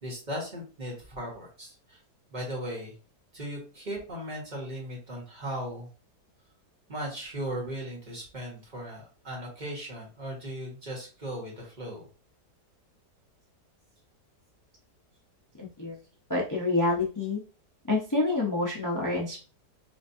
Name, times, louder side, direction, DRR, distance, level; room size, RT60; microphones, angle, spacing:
voice 1, 0.0-2.0 2.3-2.9 3.3-5.9 6.9-12.0, equal, 30° right, -2 dB, 1.4 m, -37 dB
voice 2, 15.6-16.0 16.3-17.4 17.9-19.4, left 2 dB, 30° left, -3 dB, 0.3 m, -27 dB
5.0 x 2.5 x 2.7 m, 0.35 s
omnidirectional pair, 1.8 m